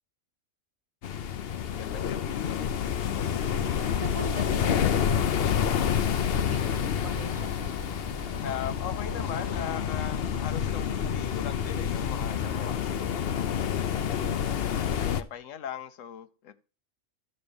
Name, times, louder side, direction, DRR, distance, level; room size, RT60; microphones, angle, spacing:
sound 1, 1.0-15.2, left 8 dB, 55° left, 0.8 m, -28 dB
voice 1, 1.7-2.7 8.4-16.6, left 9 dB, 75° left, 1.1 m, -40 dB
sound 2, 3.3-12.8, equal, 15° right, 1.0 m, -47 dB
voice 2, 3.9-6.0 6.3-7.8, right 4 dB, 40° right, 0.6 m, -42 dB
sound 3, 6.4-15.0, left 2 dB, 15° left, 0.4 m, -44 dB
13.0 x 4.4 x 6.9 m
omnidirectional pair, 1.4 m